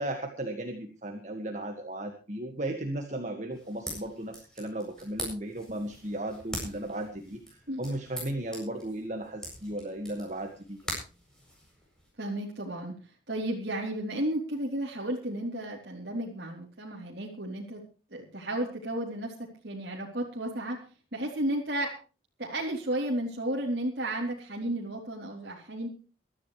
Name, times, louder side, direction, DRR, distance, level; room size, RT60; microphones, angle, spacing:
voice 1, 0.0-10.8, right 1 dB, 40° right, 5 dB, 1.8 m, -35 dB
sound 1, 3.5-12.1, equal, 5° left, 7.9 m, -43 dB
voice 2, 12.2-12.9 13.3-17.8 18.1-20.8 21.1-21.9 22.4-25.9, right 1 dB, 55° right, -3 dB, 3.4 m, -33 dB
23.0 x 13.0 x 3.3 m, 0.35 s
head